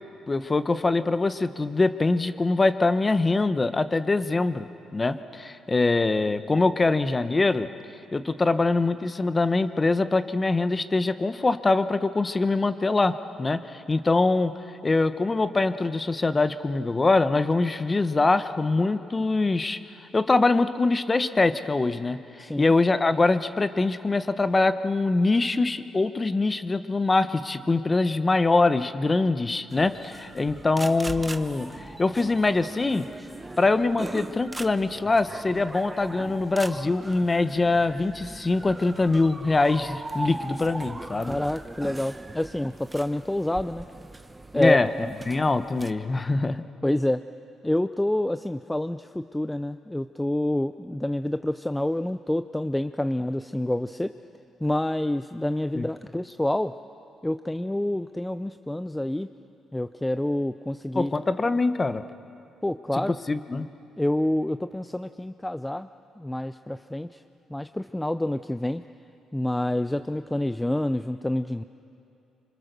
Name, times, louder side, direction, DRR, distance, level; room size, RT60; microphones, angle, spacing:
voice 1, 0.3-7.7 8.1-14.5 14.8-19.8 20.1-31.7 32.0-33.1 33.6-41.3 44.5-44.9 45.3-46.6 55.7-55.9 60.9-62.0 62.9-63.0 63.3-63.7, left 3 dB, 25° left, 11 dB, 1.0 m, -23 dB
voice 2, 22.4-22.7 41.3-43.8 44.5-45.1 46.8-47.2 47.6-54.1 54.6-56.7 57.2-59.3 59.7-61.1 62.6-63.2 64.0-65.9 66.2-67.2 67.5-68.8 69.3-71.6, left 1 dB, 10° left, 10 dB, 0.5 m, -27 dB
sound 1, 29.7-45.9, right 2 dB, 15° right, 1.0 m, -40 dB
26.0 x 25.5 x 6.8 m, 2.7 s
cardioid pair, 90°, 0 cm